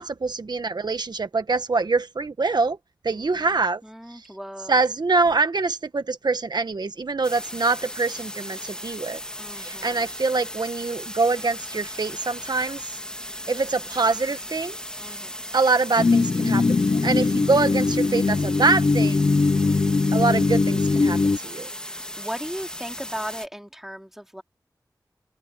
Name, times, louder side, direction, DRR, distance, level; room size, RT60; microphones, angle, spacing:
voice 1, 0.0-2.8 3.0-3.8 4.6-9.2 9.5-12.8 13.5-14.8 15.5-19.3 20.1-21.7, right 3 dB, 80° right, 1.4 m, -24 dB
voice 2, 3.1-4.8 9.4-10.1 15.0-15.3 19.4-19.8 21.9-24.4, equal, 5° right, 2.5 m, -37 dB
sound 1, 7.2-23.5, left 1 dB, 10° left, 2.3 m, -37 dB
sound 2, 16.0-21.4, left 3 dB, 50° left, 0.5 m, -21 dB
wide cardioid pair, 55°, 7 cm